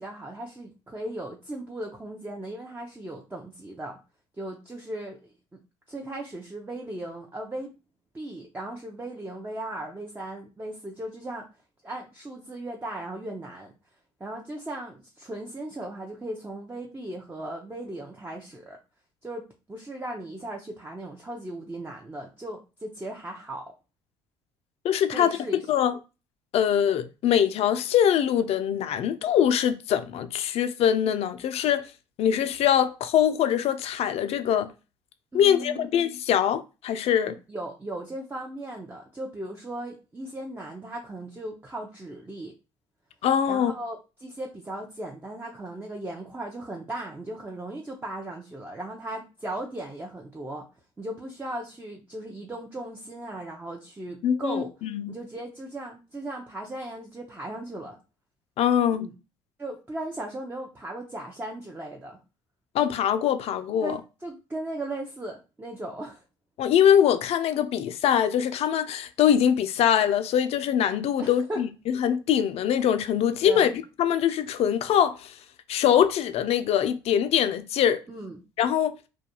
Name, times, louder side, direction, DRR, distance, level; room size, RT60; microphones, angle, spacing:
voice 1, 0.0-4.0 4.4-5.6 5.9-7.7 8.1-11.5 11.8-13.7 14.2-18.8 19.2-23.7 25.1-25.6 35.3-35.9 37.5-42.5 43.5-50.6 51.0-54.7 55.1-58.0 59.0-59.1 59.6-62.2 63.8-66.2 71.2-71.6 73.4-73.7 78.1-78.4, right 1 dB, 15° right, 0.6 m, -37 dB
voice 2, 24.8-25.4 25.7-25.9 26.5-31.8 32.2-34.7 35.3-37.4 43.2-43.7 54.2-55.2 58.6-59.1 62.7-63.9 66.6-75.3 75.7-78.0 78.6-79.0, left 9 dB, 55° left, 0.4 m, -23 dB
2.3 x 2.2 x 2.9 m
hypercardioid pair, 65°, 12 cm